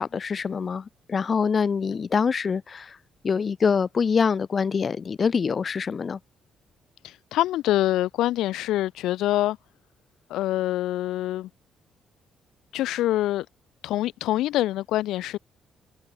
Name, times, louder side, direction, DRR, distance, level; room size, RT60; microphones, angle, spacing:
voice 1, 0.0-3.0 3.2-6.2, left 6 dB, 40° left, 1.3 m, -25 dB
voice 2, 7.0-9.6 10.3-11.5 12.7-13.5 13.8-15.4, left 15 dB, 90° left, 1.6 m, -25 dB
cardioid pair, 90°, 0 cm